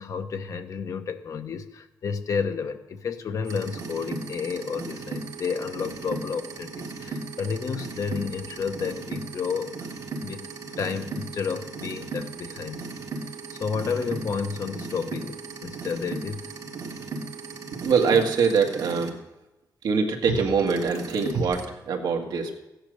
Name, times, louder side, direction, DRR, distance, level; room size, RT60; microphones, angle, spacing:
voice 1, 0.0-9.7 10.2-12.9 13.5-16.5, left 6 dB, 50° left, 7 dB, 1.0 m, -31 dB
sound 1, 3.4-19.1 20.2-21.7, right 4 dB, 55° right, 1.8 m, -36 dB
voice 2, 17.8-19.2 19.8-22.5, right 5 dB, 75° right, 2 dB, 2.0 m, -23 dB
15.5 x 10.0 x 6.6 m, 0.98 s
wide cardioid pair, 180°, 7 cm